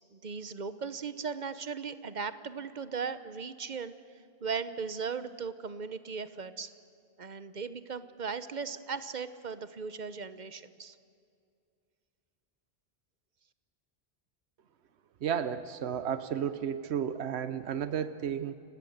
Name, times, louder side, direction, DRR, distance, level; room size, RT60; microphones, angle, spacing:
voice 1, 0.1-3.9 4.4-6.7 7.2-11.0, right 5 dB, 45° right, 13 dB, 0.9 m, -37 dB
voice 2, 15.2-18.5, right 8 dB, 90° right, 13 dB, 1.0 m, -33 dB
29.5 x 17.0 x 7.9 m, 2.4 s
omnidirectional pair, 1.1 m